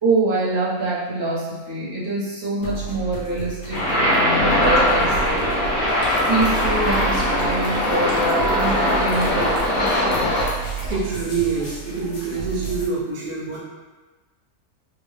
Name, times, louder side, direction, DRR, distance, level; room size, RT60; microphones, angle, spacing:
voice 1, 0.0-5.5 6.3-10.3, right 2 dB, 20° right, -11 dB, 1.0 m, -25 dB
sound 1, 2.6-12.9, right 7 dB, 85° left, 1.4 m, -32 dB
sound 2, 3.7-10.5, left 1 dB, 65° left, 1.3 m, -21 dB
sound 3, 6.0-11.0, equal, 30° left, 0.4 m, -36 dB
voice 2, 10.9-13.6, right 4 dB, 85° right, -4 dB, 1.3 m, -26 dB
3.6 x 2.6 x 3.2 m, 1.3 s
omnidirectional pair, 1.6 m